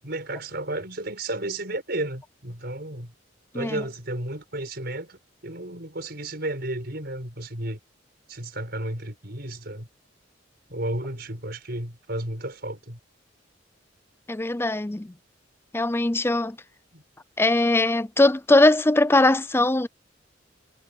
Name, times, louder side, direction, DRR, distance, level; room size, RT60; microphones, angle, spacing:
voice 1, 0.0-3.1 3.5-7.8 8.3-9.9 10.7-13.0 16.9-17.0, right 1 dB, 55° right, 5.5 m, -33 dB
voice 2, 14.3-15.1 15.7-16.6 17.4-19.9, left 2 dB, 10° left, 0.5 m, -20 dB
head